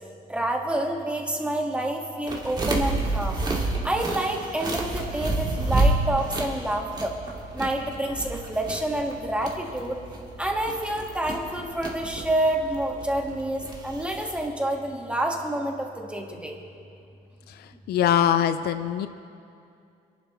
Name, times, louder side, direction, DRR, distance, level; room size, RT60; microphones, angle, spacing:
voice 1, 0.3-3.4 3.8-7.2 7.5-10.0 10.4-16.6, right 1 dB, 5° right, 1 dB, 1.7 m, -28 dB
sound 1, 2.3-14.4, right 2 dB, 25° right, 2.2 m, -29 dB
voice 2, 17.9-19.1, left 10 dB, 70° left, 11 dB, 0.5 m, -22 dB
26.0 x 11.5 x 3.1 m, 2.5 s
cardioid pair, 110°, 17 cm